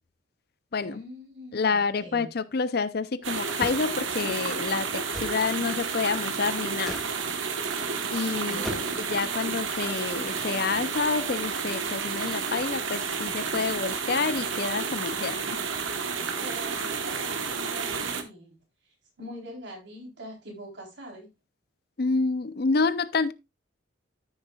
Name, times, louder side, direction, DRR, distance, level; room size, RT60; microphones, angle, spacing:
voice 1, 0.8-2.3 8.1-8.9 16.4-18.6 19.2-21.3, equal, 60° right, 3.7 m, -43 dB
voice 2, 1.5-7.0 8.1-15.6 22.0-23.3, left 4 dB, 50° left, 0.6 m, -28 dB
sound 1, 3.2-18.2, right 5 dB, 80° right, 1.2 m, -31 dB
sound 2, 3.6-3.9 5.1-5.4 6.8-7.1 8.6-9.1, equal, ahead, 1.7 m, -36 dB
13.5 x 6.4 x 2.3 m
head